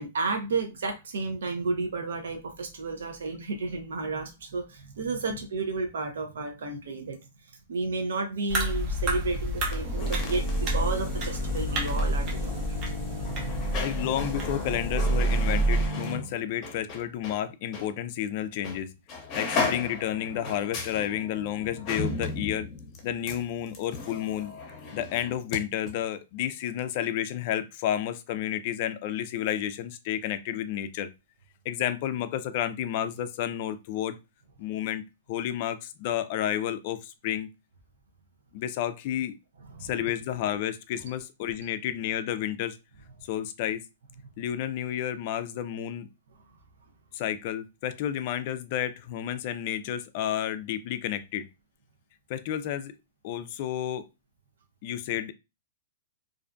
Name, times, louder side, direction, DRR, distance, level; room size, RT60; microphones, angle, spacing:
voice 1, 0.0-7.2 7.7-12.8 39.7-40.0 41.4-41.5, right 3 dB, 80° right, 0.6 m, -32 dB
sound 1, 8.5-15.9, right 1 dB, 30° right, 0.7 m, -28 dB
sound 2, 9.6-17.4 17.7-17.9 18.6-18.8 19.1-25.6 25.9-26.0, left 3 dB, 30° left, 0.7 m, -35 dB
voice 2, 13.8-18.9 19.3-22.7 23.0-24.5 24.9-31.1 31.7-34.2 34.6-35.0 35.3-37.5 38.5-39.3 39.8-42.8 43.3-43.8 44.4-46.1 47.1-51.5 52.3-52.9 53.2-54.0 54.8-55.3, left 11 dB, 45° left, 0.3 m, -31 dB
2.5 x 2.2 x 2.5 m
hypercardioid pair, 145°, 0 cm